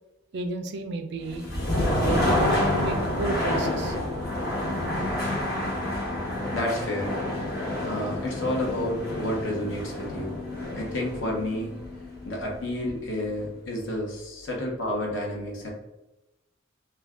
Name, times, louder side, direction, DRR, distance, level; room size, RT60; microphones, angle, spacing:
voice 1, 0.3-1.5 1.7-4.0, right 3 dB, 60° right, 6 dB, 0.4 m, -32 dB
sound 1, 1.2-13.1, left 1 dB, 55° left, 1.1 m, -28 dB
voice 2, 6.5-7.2 7.8-10.4 10.7-11.7 12.2-15.7, left 1 dB, 70° left, -1 dB, 0.9 m, -30 dB
2.5 x 2.3 x 3.4 m, 0.97 s
head